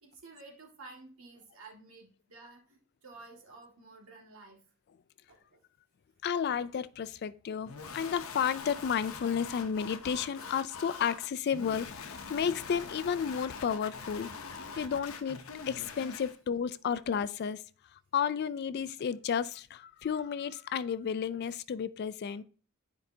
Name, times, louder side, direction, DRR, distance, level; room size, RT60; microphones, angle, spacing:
voice 1, 0.0-4.6 5.3-5.6, right 3 dB, 80° right, 2.0 m, -52 dB
voice 2, 6.2-14.3 14.8-15.4 15.7-17.6 17.9-22.4, left 7 dB, 50° left, 0.3 m, -32 dB
sound 1, 7.7-16.4, left 5 dB, 70° left, 0.7 m, -44 dB
10.5 x 4.7 x 2.7 m
head